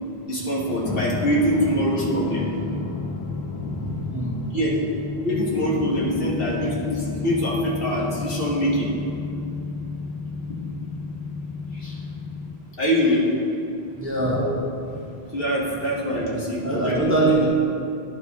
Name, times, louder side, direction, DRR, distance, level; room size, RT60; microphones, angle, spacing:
voice 1, 0.3-2.4 3.7-3.9 4.5-4.8 5.2-8.9 11.7-12.0 12.8-13.2 14.3-14.5 14.9-15.0 15.3-17.2, equal, 60° left, -5 dB, 1.5 m, -24 dB
sound 1, 0.8-12.6, left 3 dB, 40° left, 0.3 m, -31 dB
voice 2, 14.0-14.4 16.6-17.5, right 2 dB, 15° right, -3 dB, 0.7 m, -22 dB
10.5 x 4.9 x 3.4 m, 2.7 s
omnidirectional pair, 1.1 m